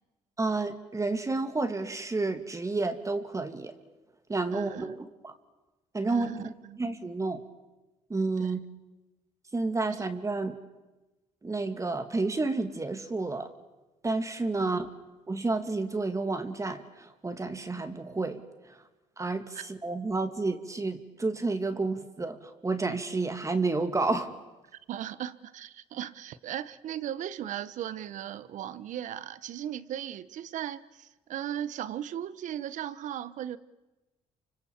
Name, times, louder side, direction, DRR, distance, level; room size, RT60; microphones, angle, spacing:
voice 1, 0.4-3.7 4.3-5.3 5.9-6.4 6.8-7.4 8.1-8.6 9.5-10.6 11.4-13.5 14.0-14.9 15.3-18.4 18.7-18.8 19.2-24.3, right 3 dB, 25° right, 7 dB, 2.6 m, -30 dB
voice 2, 4.5-5.0 6.1-6.8 8.4-8.6 10.0-10.1 14.6-14.7 19.5-19.6 24.9-33.6, right 10 dB, 70° right, 16 dB, 1.2 m, -37 dB
29.0 x 26.0 x 7.4 m, 1.1 s
supercardioid pair, 75°, 13 cm